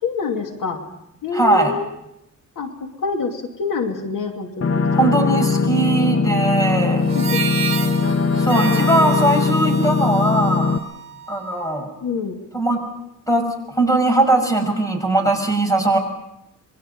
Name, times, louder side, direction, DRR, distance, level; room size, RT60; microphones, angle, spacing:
voice 1, 0.0-0.8 1.2-1.9 2.6-5.1 7.1-7.4 8.5-9.0 12.0-12.4, left 4 dB, 80° left, 3 dB, 2.7 m, -26 dB
voice 2, 1.3-1.7 4.9-7.1 8.4-10.8 11.3-11.9 12.5-12.8 13.3-16.0, right 2 dB, 10° left, 5 dB, 5.9 m, -19 dB
sound 1, 4.6-10.8, left 4 dB, 45° left, 1.1 m, -20 dB
Harmonica, 7.0-11.6, right 7 dB, 40° right, 3.4 m, -30 dB
27.0 x 22.0 x 5.5 m, 0.81 s
wide cardioid pair, 125°, 32 cm